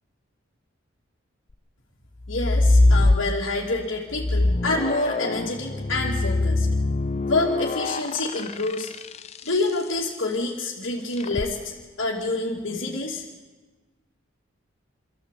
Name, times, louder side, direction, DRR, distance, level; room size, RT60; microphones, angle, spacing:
sound 1, 2.2-3.7 4.1-9.6 11.2-11.5, left 2 dB, 30° left, 0.6 m, -23 dB
voice 1, 2.3-6.7 7.3-8.9 9.4-13.2, left 2 dB, 65° left, -5 dB, 2.7 m, -27 dB
25.0 x 14.5 x 8.3 m, 1.2 s
head